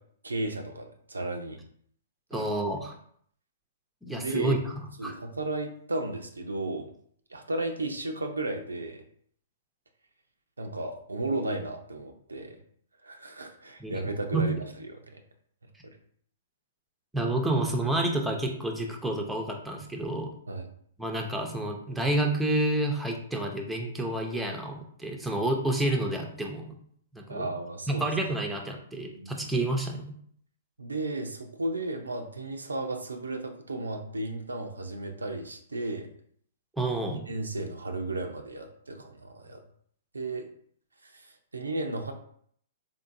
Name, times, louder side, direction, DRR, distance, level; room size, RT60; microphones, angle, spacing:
voice 1, 0.2-1.6 2.3-2.5 4.1-4.6 5.0-6.9 7.3-9.0 10.6-12.6 13.0-15.2 20.5-20.7 27.3-28.1 29.1-29.5 30.8-36.1 37.3-39.6 40.1-40.5 41.0-42.1, right 2 dB, 90° right, 4 dB, 0.5 m, -34 dB
voice 2, 2.3-3.0 4.0-4.7 5.0-5.1 13.8-14.0 14.3-14.5 17.1-20.3 21.0-26.8 27.1-27.5 27.9-30.1 36.8-37.2, right 1 dB, 5° right, 1 dB, 0.6 m, -29 dB
3.7 x 2.6 x 2.6 m, 0.62 s
hypercardioid pair, 120°, 0 cm